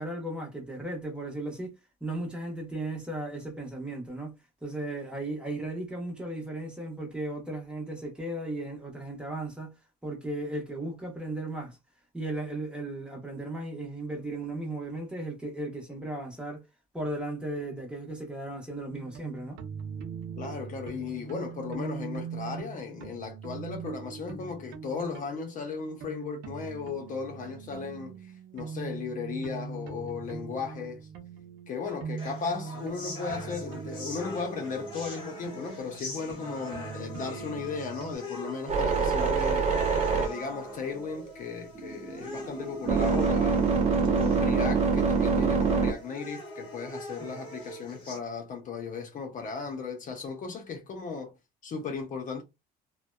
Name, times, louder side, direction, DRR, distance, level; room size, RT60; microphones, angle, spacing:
voice 1, 0.0-4.3 4.6-9.7 10.0-11.8 12.1-16.6 16.9-19.6 47.2-47.4, right 2 dB, 5° right, 1.0 m, -36 dB
sound 1, 18.9-38.1, right 6 dB, 90° right, 0.6 m, -41 dB
voice 2, 20.4-28.1 28.5-31.1 31.7-43.6 44.0-51.3 51.6-52.4, left 5 dB, 50° left, 0.7 m, -36 dB
sound 2, 32.2-48.2, left 1 dB, 30° left, 1.5 m, -42 dB
sound 3, 38.7-41.3 41.8-45.9, right 5 dB, 40° right, 0.7 m, -25 dB
2.6 x 2.2 x 2.2 m
cardioid pair, 110°, 17 cm